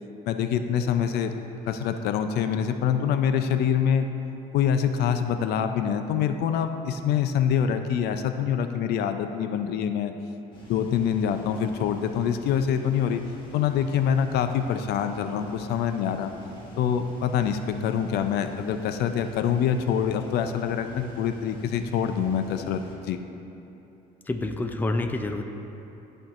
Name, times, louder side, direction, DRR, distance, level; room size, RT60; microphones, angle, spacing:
voice 1, 0.3-1.3 1.7-4.1 4.5-10.1 10.7-13.2 13.5-16.3 16.8-23.2, left 8 dB, 75° left, 8 dB, 0.4 m, -25 dB
sound 1, 10.5-23.0, left 2 dB, 30° left, 1.5 m, -47 dB
voice 2, 24.3-25.4, left 2 dB, 10° left, 5 dB, 0.4 m, -27 dB
13.0 x 4.4 x 2.5 m, 2.9 s
cardioid pair, 110°, 17 cm